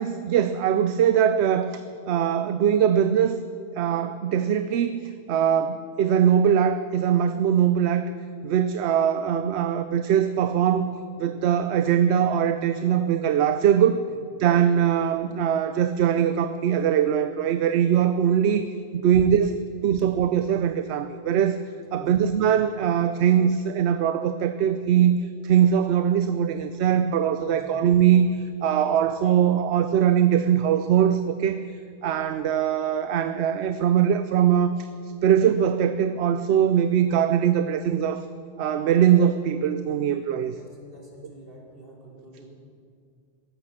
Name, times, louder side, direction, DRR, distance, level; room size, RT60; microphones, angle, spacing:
voice 1, 0.0-3.4 3.8-5.0 5.3-8.1 8.4-10.9 11.2-14.0 14.4-21.6 21.9-31.6 32.0-34.9 35.2-38.2 38.6-40.6, right 9 dB, 75° right, 10 dB, 0.8 m, -21 dB
voice 2, 40.5-42.5, right 1 dB, 55° right, -3 dB, 3.3 m, -47 dB
15.5 x 11.5 x 6.5 m, 2.2 s
omnidirectional pair, 1.1 m